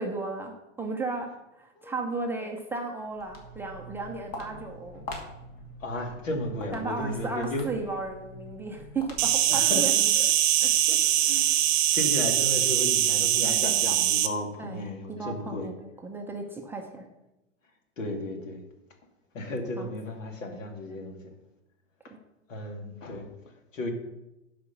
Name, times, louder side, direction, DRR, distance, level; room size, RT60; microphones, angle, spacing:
voice 1, 0.0-5.1 6.7-10.3 10.6-10.7 14.6-17.1 19.8-19.9 20.9-21.2 22.1-22.2, right 3 dB, 5° right, 1 dB, 0.5 m, -35 dB
Walk footsteps, 3.0-9.6, left 1 dB, 50° left, 2.3 m, -44 dB
voice 2, 5.8-7.7 9.5-10.0 10.6-11.6 11.9-15.7 18.0-18.6 19.3-21.2 22.5-23.3 23.7-23.9, left 1 dB, 80° left, 4 dB, 2.3 m, -34 dB
Insect, 9.2-14.3, right 12 dB, 35° right, 0.9 m, -23 dB
11.0 x 5.0 x 5.9 m, 0.94 s
hypercardioid pair, 135°, 38 cm